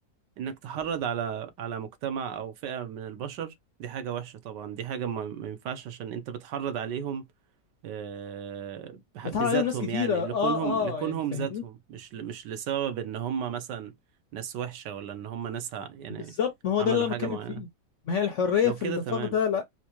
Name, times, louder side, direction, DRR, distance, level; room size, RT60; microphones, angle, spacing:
voice 1, 0.4-3.5 3.8-7.2 7.8-13.9 14.3-16.3 16.8-17.6 18.6-19.3, right 9 dB, 80° right, 1.4 m, -34 dB
voice 2, 9.3-11.6 16.3-17.7 18.1-19.6, left 7 dB, 70° left, 0.7 m, -27 dB
4.4 x 2.1 x 2.9 m
omnidirectional pair, 1.9 m